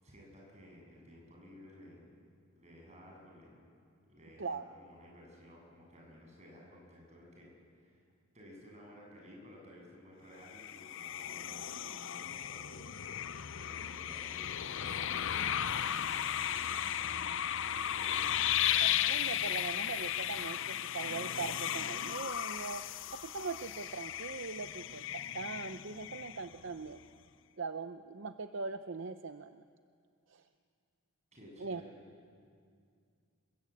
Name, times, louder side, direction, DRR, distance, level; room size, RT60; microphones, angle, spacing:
voice 1, 0.0-2.3 2.5-3.6 4.1-8.0 8.3-15.3 15.8-18.6 31.3-32.0, equal, 30° right, -1 dB, 8.0 m, -55 dB
sound 1, 10.5-26.7, left 10 dB, 60° left, 0.6 m, -35 dB
voice 2, 18.8-22.8 23.2-27.0 27.6-29.6 30.3-30.4 31.6-31.8, right 4 dB, 60° right, 9 dB, 0.6 m, -41 dB
27.5 x 21.5 x 8.5 m, 2.3 s
head